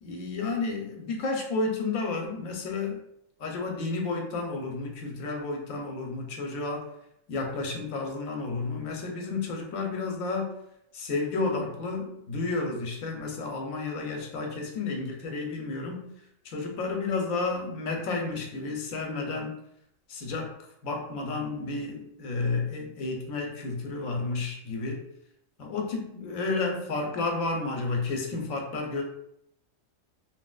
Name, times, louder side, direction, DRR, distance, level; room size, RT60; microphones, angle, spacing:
voice 1, 0.0-3.0 3.4-6.8 7.3-10.5 10.9-16.1 16.4-19.6 20.1-20.5 20.8-25.0 25.6-29.0, left 3 dB, 75° left, 2 dB, 1.1 m, -31 dB
3.0 x 2.8 x 2.3 m, 0.76 s
omnidirectional pair, 1.4 m